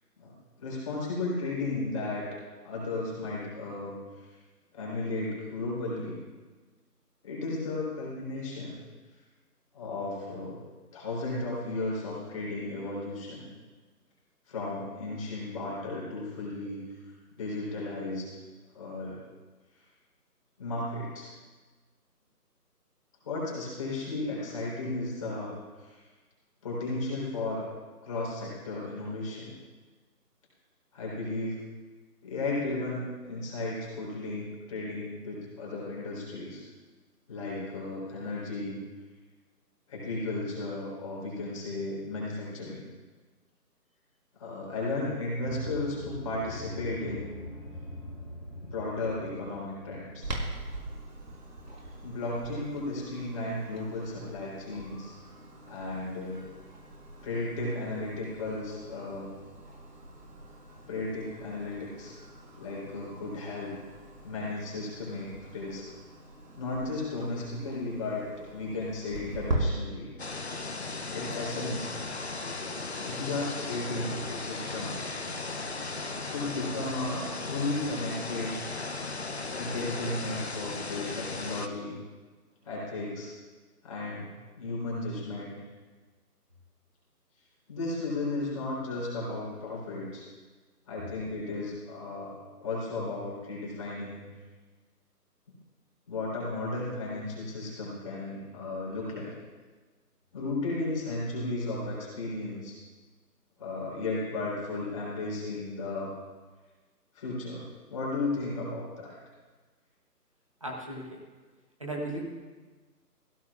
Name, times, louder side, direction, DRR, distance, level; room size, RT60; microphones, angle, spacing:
voice 1, 0.2-2.3 2.6-4.3 4.7-6.2 7.2-8.8 9.7-10.6 10.9-13.5 14.5-16.9 17.3-18.3 18.7-19.2 20.6-21.3 23.2-26.0 26.6-27.6 28.0-29.5 30.9-31.6 32.2-36.6 37.3-38.8 39.9-42.8 44.4-47.4 48.6-50.3 51.8-55.1 55.7-56.4 57.2-59.3 60.9-62.1 62.6-63.7 64.2-65.9 66.6-70.1 71.1-71.9 73.0-75.0 76.3-78.6 79.5-82.0 82.6-83.3 83.8-84.3 84.6-85.5 87.7-90.3 90.9-94.3 96.1-99.3 100.3-102.8 103.6-106.1 107.1-109.2, left 2 dB, 20° left, -6 dB, 4.0 m, -34 dB
sound 1, 45.4-50.5, left 1 dB, ahead, 3.7 m, -43 dB
Clock, 50.2-69.6, right 1 dB, 85° right, 4.9 m, -42 dB
sound 2, 70.2-81.7, left 3 dB, 40° left, 0.7 m, -36 dB
voice 2, 110.6-111.2 111.8-112.2, right 1 dB, 20° right, -2 dB, 1.1 m, -36 dB
19.0 x 16.0 x 2.5 m, 1.3 s
figure-of-eight pair, 170°, 48 cm